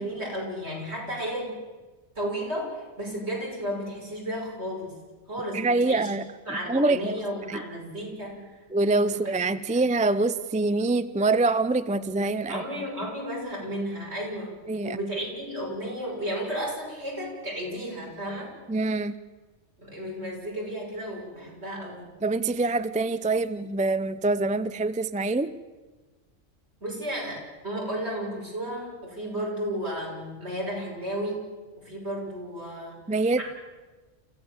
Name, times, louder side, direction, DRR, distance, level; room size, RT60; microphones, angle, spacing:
voice 1, 0.0-1.5 2.1-4.9 5.3-6.1 6.5-8.6 9.0-9.2 9.7-9.9 12.5-14.5 14.8-18.5 19.8-22.1 26.8-31.4 31.8-33.0 33.4-33.5, equal, 60° right, -3 dB, 6.5 m, -33 dB
voice 2, 5.5-6.2 6.7-7.2 7.5-7.6 8.7-12.6 14.7-15.0 18.7-19.2 22.2-25.5 33.1-33.4, right 3 dB, 10° right, 13 dB, 0.3 m, -25 dB
29.5 x 15.5 x 7.2 m, 1.3 s
omnidirectional pair, 1.2 m